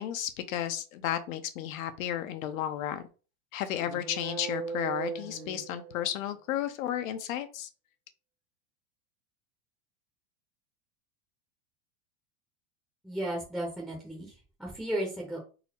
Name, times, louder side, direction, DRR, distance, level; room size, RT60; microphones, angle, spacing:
voice 1, 0.0-3.0 3.5-7.7, left 11 dB, 80° left, 9 dB, 0.7 m, -33 dB
sound 1, 3.8-6.3, right 6 dB, 65° right, 1.5 m, -38 dB
voice 2, 13.0-15.4, right 1 dB, ahead, -3 dB, 0.6 m, -34 dB
4.0 x 2.0 x 4.2 m, 0.34 s
supercardioid pair, 155°, 40 cm